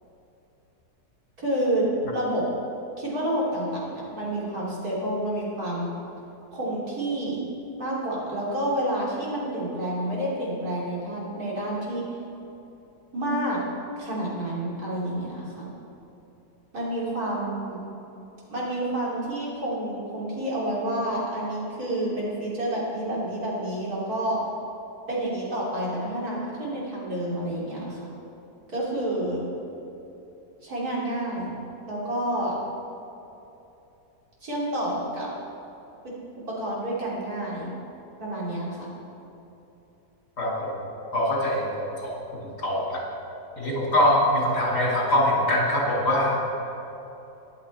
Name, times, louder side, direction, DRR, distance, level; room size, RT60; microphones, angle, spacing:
voice 1, 1.4-2.4 3.0-5.9 6.5-7.4 7.8-12.1 13.1-13.6 14.0-15.7 16.7-17.8 18.5-24.4 25.1-28.0 28.7-29.4 30.6-31.6 31.9-32.6 34.4-35.3 36.0-36.2 36.5-37.7 38.2-38.9, right 1 dB, 65° right, -6 dB, 3.6 m, -29 dB
voice 2, 40.4-40.7 41.1-42.1 42.6-43.0 43.6-46.5, left 1 dB, 75° left, -4 dB, 3.3 m, -23 dB
14.0 x 11.0 x 4.3 m, 3.0 s
omnidirectional pair, 1.7 m